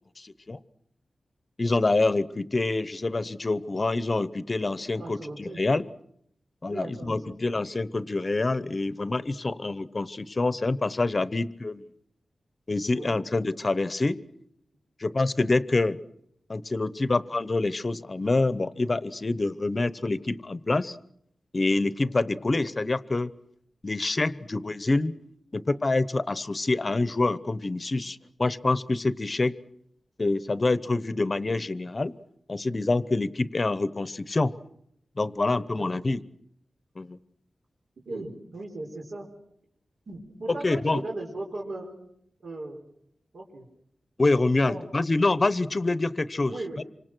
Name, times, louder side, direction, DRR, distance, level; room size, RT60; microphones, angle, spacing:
voice 1, 0.2-0.6 1.6-5.8 6.6-11.9 12.7-14.2 15.0-16.0 16.5-21.0 21.5-23.3 23.8-25.1 25.5-29.6 30.2-32.2 32.5-34.5 35.2-36.2 37.0-37.2 40.6-41.0 44.2-46.8, left 2 dB, 30° left, 16 dB, 0.9 m, -26 dB
voice 2, 5.0-5.6 6.7-7.4 12.9-13.2 22.0-22.2 35.7-36.0 38.0-39.3 40.1-42.0 42.4-42.8 43.3-43.7 44.6-44.9 46.5-46.8, right 2 dB, 70° right, -2 dB, 4.5 m, -37 dB
27.0 x 25.5 x 6.2 m, 0.71 s
wide cardioid pair, 150°, 0 cm